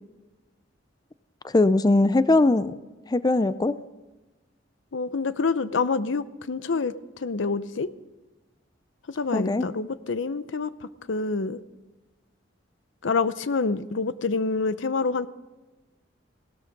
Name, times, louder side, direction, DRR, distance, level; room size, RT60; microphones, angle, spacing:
voice 1, 1.5-2.7 3.1-3.7 9.3-9.7, left 2 dB, 20° left, 14 dB, 0.4 m, -20 dB
voice 2, 4.9-6.9 7.2-7.9 9.1-11.6 13.0-15.3, left 4 dB, 85° left, 15 dB, 0.7 m, -27 dB
17.0 x 13.0 x 5.2 m, 1.1 s
head